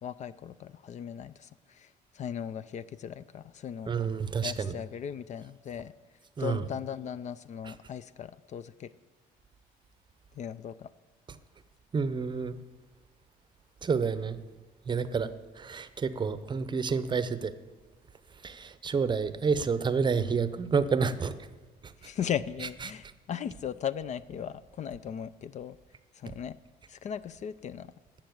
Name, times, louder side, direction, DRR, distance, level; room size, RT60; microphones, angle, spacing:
voice 1, 0.0-3.9 4.4-5.9 6.4-8.9 10.3-10.9 22.0-25.8 26.1-26.6 26.9-27.9, left 9 dB, 45° left, 16 dB, 0.4 m, -37 dB
voice 2, 3.9-4.7 6.4-6.7 11.9-12.6 13.8-14.4 14.9-15.3 15.6-17.5 18.4-21.5 21.8-22.1 22.8-22.9, right 5 dB, 25° right, 13 dB, 0.7 m, -29 dB
11.5 x 7.5 x 7.9 m, 1.2 s
cardioid pair, 110°, 17 cm